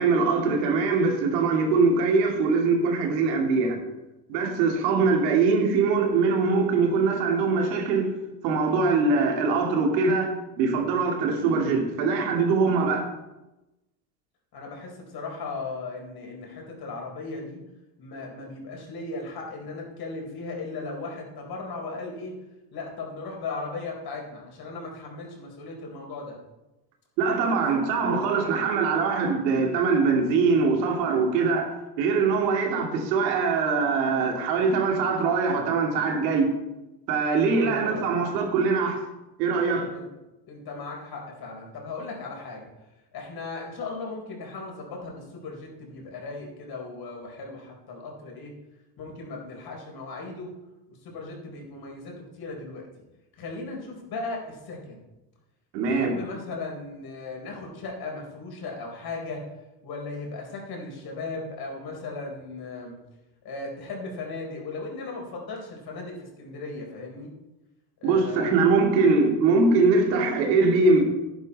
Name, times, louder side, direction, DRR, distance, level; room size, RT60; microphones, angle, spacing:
voice 1, 0.0-3.8 4.3-8.1 8.4-13.1 27.2-36.5 37.1-39.0 39.4-39.9 55.7-56.2 68.0-71.0, right 4 dB, 80° right, 2.7 m, -22 dB
voice 2, 14.5-17.6 18.0-22.3 22.7-26.4 27.7-27.9 37.5-38.3 39.9-40.1 40.5-42.7 43.1-48.5 49.0-50.5 50.9-52.9 53.4-55.0 55.9-59.4 59.8-62.9 63.4-67.3 68.0-68.6 69.1-69.3, left 3 dB, 45° left, 4.3 m, -37 dB
10.5 x 10.5 x 4.2 m
supercardioid pair, 100°, 50 cm